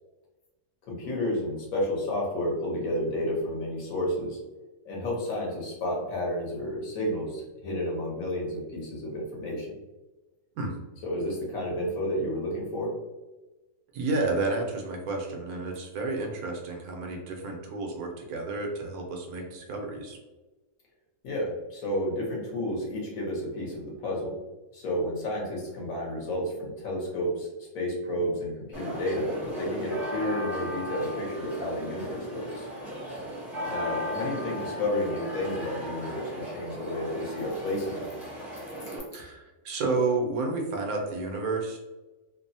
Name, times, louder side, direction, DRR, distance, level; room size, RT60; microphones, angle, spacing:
voice 1, 0.9-4.4 4.8-9.7 11.0-12.9 21.2-24.4 24.7-27.5 27.7-29.3 29.6-32.7 33.7-38.0, left 1 dB, 70° left, -3 dB, 1.3 m, -31 dB
voice 2, 13.9-20.2 39.1-41.8, right 3 dB, 85° right, 0 dB, 1.1 m, -31 dB
sound 1, 28.7-39.0, equal, ahead, 0.5 m, -36 dB
3.1 x 2.0 x 2.6 m, 1.1 s
omnidirectional pair, 1.5 m